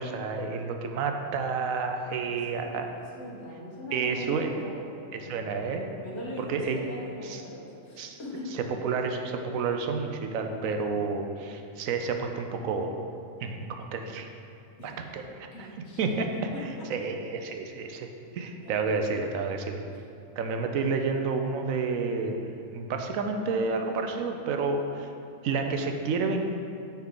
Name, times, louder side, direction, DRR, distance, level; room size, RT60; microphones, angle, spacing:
voice 1, 0.0-2.9 3.9-4.5 5.1-5.9 6.4-6.8 7.3-7.4 8.0-8.2 8.5-12.9 13.4-13.7 13.9-14.3 14.8-15.5 16.0-16.3 16.9-19.8 20.4-25.1 25.4-26.4, right 4 dB, 85° right, 5 dB, 1.0 m, -30 dB
voice 2, 2.0-5.5 6.0-8.5 14.8-15.0 15.5-16.1 16.5-16.9 18.6-18.9, left 1 dB, 55° left, -4 dB, 1.5 m, -41 dB
9.1 x 4.3 x 3.8 m, 2.5 s
omnidirectional pair, 1.4 m